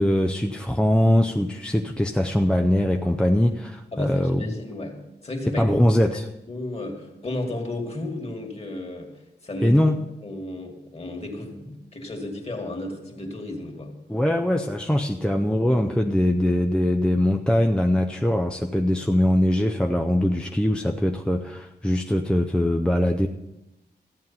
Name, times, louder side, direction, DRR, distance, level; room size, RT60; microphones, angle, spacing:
voice 1, 0.0-4.6 5.5-6.3 9.6-10.0 14.1-23.3, left 1 dB, 5° left, 3 dB, 0.5 m, -22 dB
voice 2, 3.9-5.7 6.1-6.2 6.5-9.1 9.4-9.8 10.2-14.0, left 2 dB, 35° left, 2 dB, 2.2 m, -33 dB
14.5 x 9.2 x 5.6 m, 0.95 s
wide cardioid pair, 160°, 18 cm